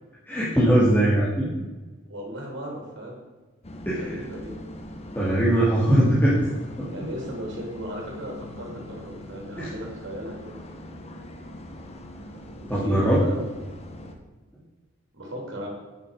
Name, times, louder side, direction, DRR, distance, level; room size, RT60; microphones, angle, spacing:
voice 1, 0.3-1.5 3.9-4.2 5.1-6.4 6.8-6.9 9.6-9.7 12.7-13.2, right 1 dB, 10° left, -8 dB, 1.9 m, -21 dB
voice 2, 2.1-3.1 4.0-4.6 6.9-10.6 12.6-13.4 15.1-15.7, equal, 60° right, -1 dB, 3.2 m, -36 dB
sound 1, 3.6-14.2, left 1 dB, 30° left, 1.1 m, -41 dB
8.8 x 6.8 x 6.4 m, 1.3 s
head